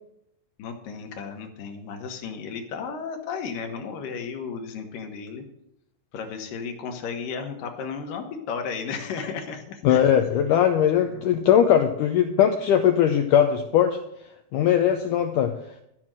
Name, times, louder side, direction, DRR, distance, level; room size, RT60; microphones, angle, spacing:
voice 1, 0.6-5.5 6.1-10.0 11.0-11.3, left 5 dB, 65° left, 4 dB, 2.7 m, -34 dB
voice 2, 9.8-14.0 14.5-15.5, left 9 dB, 85° left, 5 dB, 1.9 m, -20 dB
13.5 x 6.1 x 7.6 m, 0.78 s
omnidirectional pair, 4.6 m